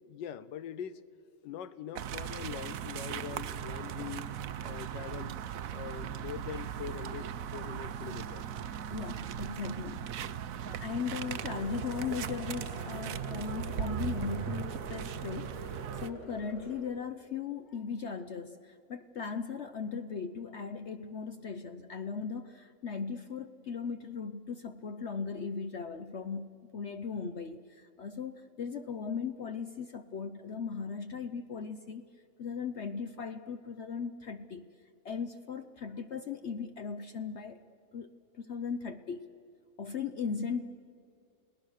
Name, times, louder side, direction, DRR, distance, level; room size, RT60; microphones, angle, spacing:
voice 1, 0.1-1.0 1.4-4.3 4.6-5.4 5.7-8.5, left 9 dB, 80° left, 15 dB, 1.5 m, -43 dB
sound 1, 2.0-16.1, right 9 dB, 65° right, 1.0 m, -38 dB
voice 2, 8.9-10.2 10.6-32.0 32.4-34.7 35.0-37.6 37.9-38.1 38.3-39.2 39.8-40.6, left 6 dB, 60° left, 9 dB, 0.7 m, -38 dB
sound 2, 11.0-16.8, equal, 35° left, 4.4 m, -46 dB
29.5 x 18.5 x 6.5 m, 2.4 s
omnidirectional pair, 1.9 m